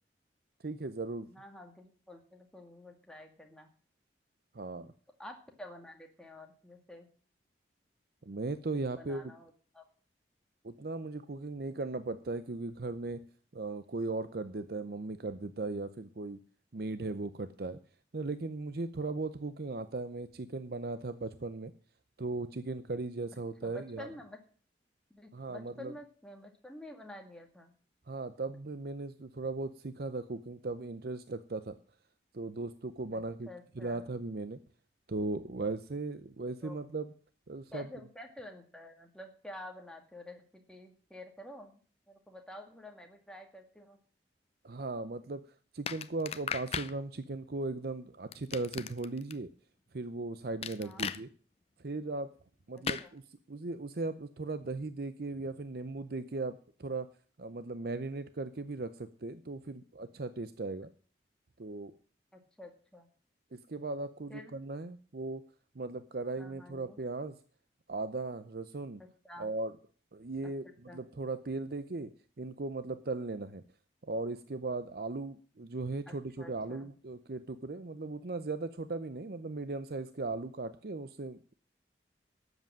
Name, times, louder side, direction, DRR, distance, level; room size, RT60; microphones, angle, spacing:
voice 1, 0.6-1.3 4.5-4.9 8.2-9.3 10.6-13.2 13.5-16.4 16.7-17.8 18.1-21.7 22.2-24.1 25.3-25.9 28.1-31.7 32.3-33.5 33.8-34.6 35.1-37.1 37.5-37.9 44.6-45.4 45.7-49.5 49.9-51.3 51.8-52.3 52.7-53.2 53.5-57.1 57.4-60.9 61.6-61.9 63.5-65.4 65.7-67.4 67.9-69.0 69.4-69.7 70.1-72.1 72.4-73.6 74.1-81.5, right 3 dB, 55° right, 12 dB, 0.6 m, -37 dB
voice 2, 1.2-3.7 5.2-7.1 8.9-9.8 23.3-24.4 25.1-27.7 33.1-34.0 36.6-36.8 37.7-41.8 42.1-44.0 50.7-51.1 52.7-53.1 62.3-63.1 64.3-64.5 66.4-67.0 69.0-69.5 70.4-70.5 70.9-71.0 76.1-76.9, left 1 dB, 5° left, 2 dB, 2.0 m, -50 dB
sound 1, 45.9-46.9 48.3-49.3 50.6-51.2 52.8-53.1, left 6 dB, 35° left, 0.6 m, -36 dB
12.5 x 8.1 x 7.5 m, 0.43 s
head